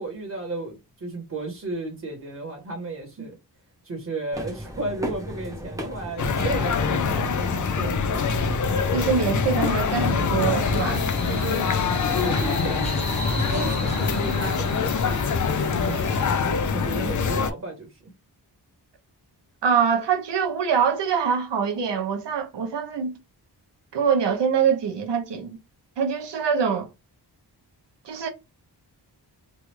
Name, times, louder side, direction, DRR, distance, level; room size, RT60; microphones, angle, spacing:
voice 1, 0.0-3.4 3.8-8.2 11.3-13.0 13.3-18.1, right 2 dB, 40° right, 1.1 m, -34 dB
sound 1, 4.3-13.1, equal, 10° right, 0.6 m, -38 dB
sound 2, 6.2-17.5, left 5 dB, 50° left, 0.4 m, -24 dB
voice 2, 8.9-11.0 19.6-23.1 23.9-25.6 26.0-26.9 28.0-28.3, right 6 dB, 90° right, 0.8 m, -24 dB
sound 3, 10.6-16.4, left 1 dB, 15° left, 1.0 m, -32 dB
3.2 x 2.3 x 3.0 m
wide cardioid pair, 145°, 41 cm